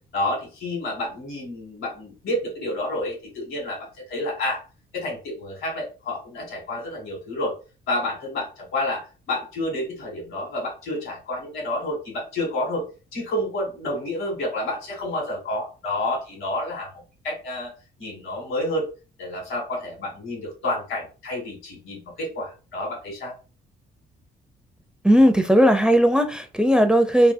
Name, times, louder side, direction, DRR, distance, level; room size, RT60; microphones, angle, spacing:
voice 1, 0.1-4.6 4.9-7.5 7.9-12.8 13.1-16.9 17.2-17.7 18.0-18.9 19.2-23.3, left 1 dB, 85° left, 1.8 m, -29 dB
voice 2, 25.0-27.3, equal, 5° right, 0.4 m, -17 dB
3.5 x 2.6 x 2.6 m
cardioid pair, 90°, 20 cm